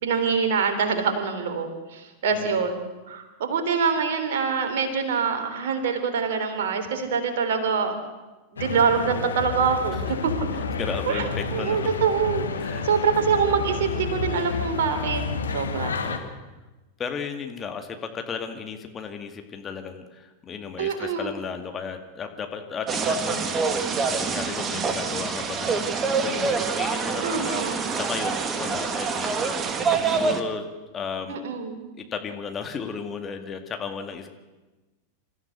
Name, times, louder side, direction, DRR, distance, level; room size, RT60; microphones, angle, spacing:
voice 1, 0.0-2.8 3.1-7.9 8.5-10.0 11.1-11.2 11.5-12.5 12.8-15.2 15.5-16.0 20.8-21.3 27.2-27.8 31.3-31.8, right 6 dB, 55° right, 7 dB, 3.5 m, -25 dB
sound 1, 8.6-16.2, left 4 dB, 70° left, 2.0 m, -30 dB
voice 2, 10.8-11.9 12.6-12.8 16.0-16.3 17.0-30.7 30.9-31.4 32.0-34.3, left 6 dB, 25° left, 6 dB, 2.2 m, -35 dB
sound 2, 22.9-30.4, right 5 dB, 25° right, 2.0 m, -26 dB
27.0 x 14.5 x 8.3 m, 1.1 s
figure-of-eight pair, 90°, 0 cm